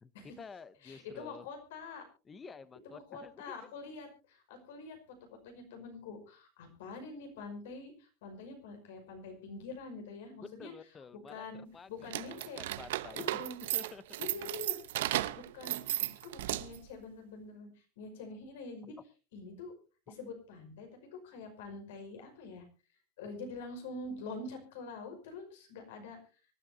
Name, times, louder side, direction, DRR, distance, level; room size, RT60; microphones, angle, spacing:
voice 1, 0.0-1.5 2.3-3.6 10.6-11.4 11.7-14.0, left 5 dB, 15° left, 16 dB, 0.6 m, -50 dB
voice 2, 0.8-2.1 2.8-5.2 5.4-10.7 11.3-12.6 13.1-13.6 14.2-15.0 15.4-19.0 19.3-19.7 20.1-22.6 23.2-26.2, left 3 dB, 85° left, 4 dB, 5.5 m, -45 dB
sound 1, 12.0-16.9, right 14 dB, 90° right, 0.8 m, -35 dB
24.5 x 12.0 x 2.8 m, 0.33 s
supercardioid pair, 175°, 0 cm